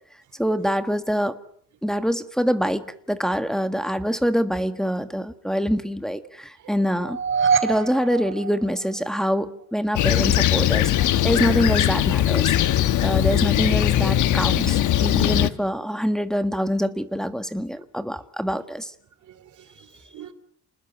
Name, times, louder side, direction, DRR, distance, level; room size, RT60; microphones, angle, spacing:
voice 1, 0.4-1.4 1.8-7.2 7.6-12.6 13.0-18.9, equal, ahead, 1.7 m, -25 dB
sound 1, 7.0-9.3, right 6 dB, 40° right, 3.4 m, -25 dB
Fixed-wing aircraft airplane, 10.0-15.5, left 12 dB, 80° left, 1.3 m, -20 dB
voice 2, 19.3-20.3, right 10 dB, 75° right, 3.0 m, -45 dB
29.0 x 20.0 x 7.8 m
cardioid pair, 90°, 30 cm